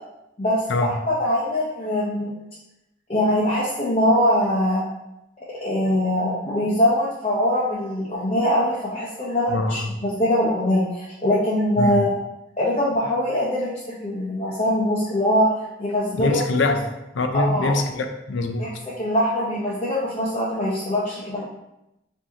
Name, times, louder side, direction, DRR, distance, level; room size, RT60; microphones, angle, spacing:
voice 1, 0.4-2.3 3.1-4.8 5.6-12.1 12.6-16.4 17.3-17.8 18.6-21.5, left 1 dB, 30° left, -8 dB, 0.7 m, -22 dB
voice 2, 9.5-9.9 11.8-12.0 16.1-16.8 17.2-18.7, left 2 dB, 75° left, 6 dB, 0.5 m, -23 dB
4.8 x 2.7 x 2.8 m, 0.89 s
head